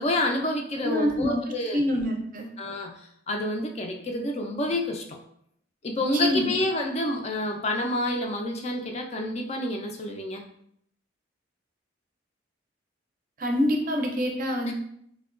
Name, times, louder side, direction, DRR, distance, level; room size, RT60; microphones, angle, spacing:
voice 1, 0.0-1.8 2.6-5.2 5.8-10.4, left 1 dB, 35° left, 2 dB, 0.3 m, -28 dB
voice 2, 0.8-1.4 1.7-2.5 6.1-6.5 13.4-14.7, left 1 dB, 45° right, 2 dB, 0.5 m, -26 dB
4.2 x 2.2 x 2.4 m, 0.69 s
head